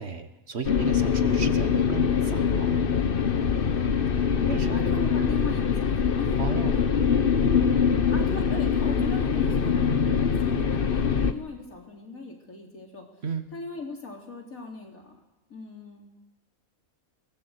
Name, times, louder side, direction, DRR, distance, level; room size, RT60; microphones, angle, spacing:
voice 1, 0.0-2.8 4.5-4.8 6.4-6.8 13.2-13.5, right 5 dB, 50° right, 9 dB, 1.4 m, -34 dB
sound 1, 0.6-11.3, left 6 dB, 40° left, 1.1 m, -23 dB
voice 2, 3.3-3.9 4.3-4.4 4.7-6.4 8.1-13.1 13.5-15.1 15.5-16.1, left 3 dB, 70° left, 0 dB, 4.0 m, -38 dB
22.5 x 18.5 x 8.1 m, 1.0 s
omnidirectional pair, 1.5 m